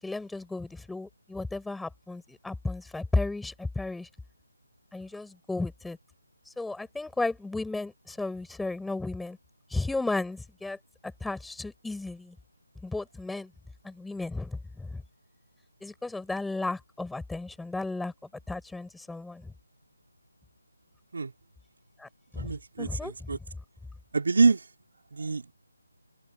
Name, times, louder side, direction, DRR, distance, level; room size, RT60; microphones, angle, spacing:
voice 1, 0.0-4.1 4.9-6.0 6.5-9.4 9.7-10.8 11.0-12.4 12.8-13.5 13.8-15.0 15.8-18.1 18.5-19.5 22.0-22.5 22.8-23.4, left 2 dB, ahead, 7.8 m, -34 dB
voice 2, 22.3-23.4 24.1-24.7 25.1-25.5, right 4 dB, 65° right, 3.3 m, -26 dB
open air
figure-of-eight pair, 165°, 0 cm